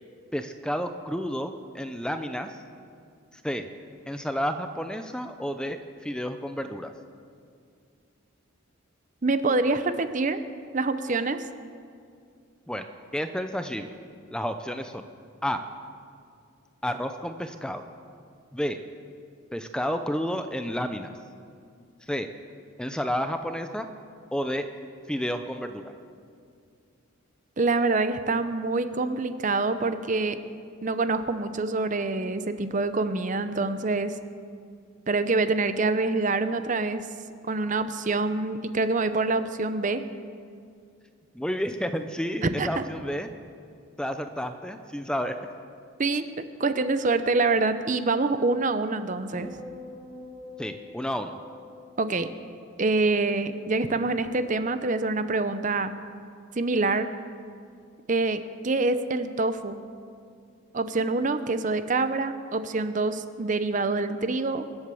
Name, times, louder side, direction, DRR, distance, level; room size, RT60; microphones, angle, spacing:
voice 1, 0.3-2.6 3.4-3.7 4.1-6.9 12.7-12.8 13.1-13.9 14.3-15.0 15.4-15.6 16.8-17.8 18.5-18.8 19.5-21.1 22.1-22.3 22.8-23.9 24.3-24.7 25.1-25.9 41.3-43.3 44.0-45.3 50.6-51.4, equal, 5° left, 8 dB, 0.5 m, -31 dB
voice 2, 9.2-10.4 10.7-11.5 27.6-30.4 30.8-34.1 35.1-37.1 37.5-40.0 42.4-42.8 46.0-46.2 46.6-49.5 52.0-52.3 52.8-55.9 56.5-57.1 58.1-59.8 60.7-64.7, right 3 dB, 40° right, 11 dB, 0.6 m, -26 dB
sound 1, 49.4-53.8 54.1-54.5, left 2 dB, 35° left, 2.3 m, -46 dB
24.0 x 8.0 x 6.9 m, 2.3 s
head